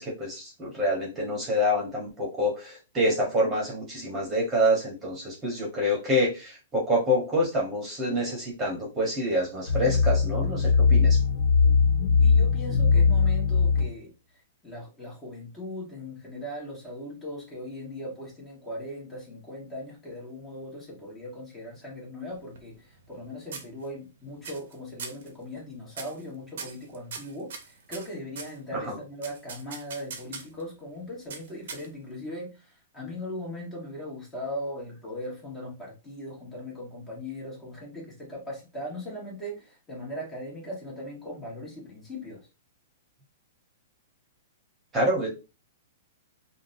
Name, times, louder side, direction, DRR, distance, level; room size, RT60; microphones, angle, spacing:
voice 1, 0.0-11.2 28.7-29.0 44.9-45.3, equal, 20° right, 1.2 m, -27 dB
sound 1, 9.7-13.9, left 5 dB, 45° left, 1.4 m, -20 dB
voice 2, 12.2-14.1 14.6-42.4, left 1 dB, 15° left, 1.4 m, -39 dB
sound 2, 22.3-23.2 23.5-24.1 24.4-24.7 25.0-25.3 25.9-26.2 26.6-28.6 29.2-30.6 31.3-32.1, right 5 dB, 70° right, 0.8 m, -40 dB
3.7 x 2.2 x 2.6 m
hypercardioid pair, 145°, 0 cm